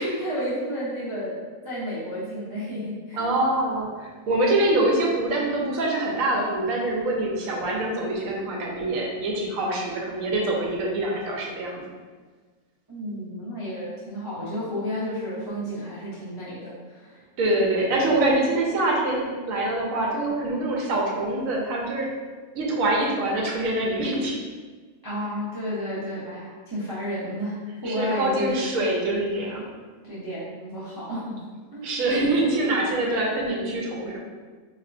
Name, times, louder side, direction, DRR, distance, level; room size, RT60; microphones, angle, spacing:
voice 1, 0.0-1.4 1.6-3.3 12.9-17.2 25.0-27.5 27.8-28.9 30.0-31.4 31.7-31.9, equal, 25° right, -11 dB, 0.5 m, -31 dB
voice 2, 3.2-11.8 17.4-22.1 22.5-24.3 27.8-29.6 31.8-34.2, right 2 dB, 70° right, -2 dB, 1.1 m, -25 dB
4.2 x 2.1 x 2.5 m, 1.4 s
omnidirectional pair, 1.5 m